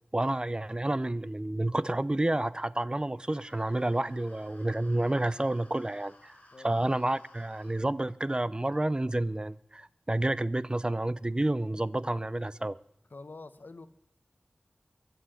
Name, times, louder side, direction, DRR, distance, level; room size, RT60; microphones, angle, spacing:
voice 1, 0.1-6.3 6.6-12.8, right 1 dB, 25° right, 0.6 m, -30 dB
sound 1, 3.2-7.8, left 1 dB, 40° left, 4.4 m, -58 dB
voice 2, 6.5-6.9 13.1-13.9, left 3 dB, 65° left, 1.1 m, -46 dB
22.5 x 8.0 x 6.5 m
wide cardioid pair, 50°, 4 cm